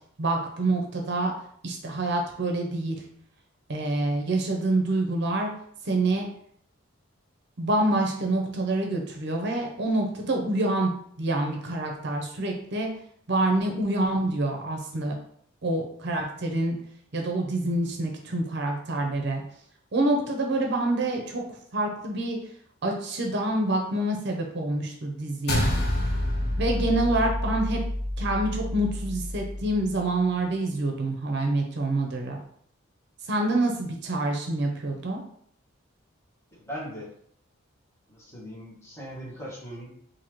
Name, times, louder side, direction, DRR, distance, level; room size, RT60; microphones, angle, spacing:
voice 1, 0.2-1.3 1.6-3.0 3.7-5.5 5.8-6.3 7.6-10.9 11.2-12.9 13.3-15.2 15.6-16.8 17.1-19.4 19.9-21.4 21.7-22.4 22.8-25.7 26.6-27.8 28.2-32.4 33.3-35.2, right 2 dB, 55° right, 2 dB, 0.7 m, -26 dB
sound 1, 25.5-30.0, left 1 dB, 50° left, 0.7 m, -28 dB
voice 2, 36.5-37.1 38.1-39.9, equal, 15° left, -7 dB, 1.4 m, -39 dB
4.1 x 2.7 x 3.0 m, 0.64 s
head